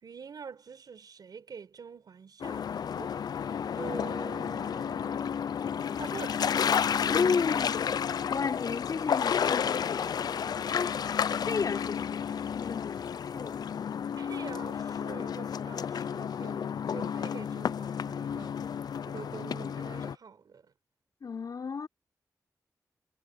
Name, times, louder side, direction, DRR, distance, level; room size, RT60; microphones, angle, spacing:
voice 1, 0.0-3.2 3.7-5.4 5.9-6.4 14.2-18.6 19.0-20.7, right 6 dB, 85° right, 4.9 m, -45 dB
sound 1, 2.4-20.2, left 7 dB, 85° left, 0.4 m, -31 dB
voice 2, 7.1-7.8 8.3-10.2 10.7-11.0 11.4-13.7 21.2-21.9, left 5 dB, 70° left, 4.0 m, -33 dB
wide cardioid pair, 90°, 7 cm